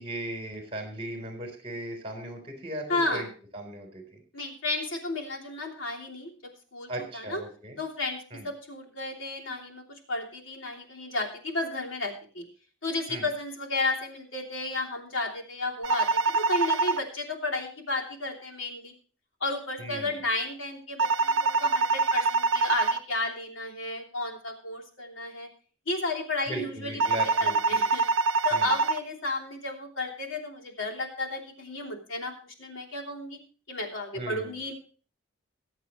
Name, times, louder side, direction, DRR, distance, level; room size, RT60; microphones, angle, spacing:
voice 1, 0.0-3.3 3.5-4.0 6.9-7.8 8.3-8.4 13.1-13.2 19.8-20.1 26.5-27.8 28.5-28.7 34.1-34.6, right 1 dB, 30° right, 3 dB, 3.7 m, -37 dB
voice 2, 2.9-3.3 4.3-7.4 7.8-12.4 12.8-18.9 19.4-25.5 25.9-27.0 27.4-28.0 28.4-33.4 33.7-34.7, left 2 dB, 75° left, 1 dB, 3.1 m, -33 dB
sound 1, 15.8-17.0 21.0-23.0 27.0-29.0, right 3 dB, 80° right, 0.7 m, -24 dB
22.5 x 8.0 x 3.1 m, 0.39 s
head